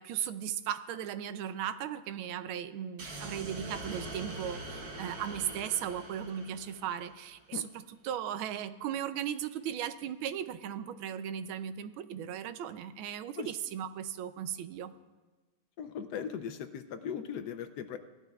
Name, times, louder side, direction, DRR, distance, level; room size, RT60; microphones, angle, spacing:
voice 1, 0.0-14.9, right 9 dB, 85° right, 12 dB, 1.4 m, -37 dB
sound 1, 3.0-7.3, right 2 dB, 55° right, 1.5 m, -43 dB
voice 2, 15.8-18.0, left 7 dB, 75° left, 7 dB, 0.9 m, -38 dB
18.0 x 12.5 x 2.3 m, 1.2 s
omnidirectional pair, 2.2 m